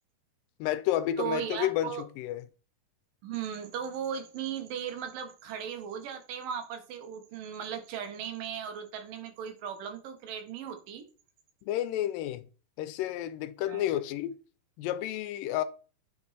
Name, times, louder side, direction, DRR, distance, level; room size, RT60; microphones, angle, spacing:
voice 1, 0.6-2.5 11.6-12.5 12.8-14.4 14.8-15.6, left 12 dB, 90° left, 2.2 m, -31 dB
voice 2, 1.2-2.0 3.2-11.1 13.7-13.8, right 8 dB, 85° right, 2.7 m, -37 dB
8.7 x 3.0 x 4.1 m
omnidirectional pair, 3.8 m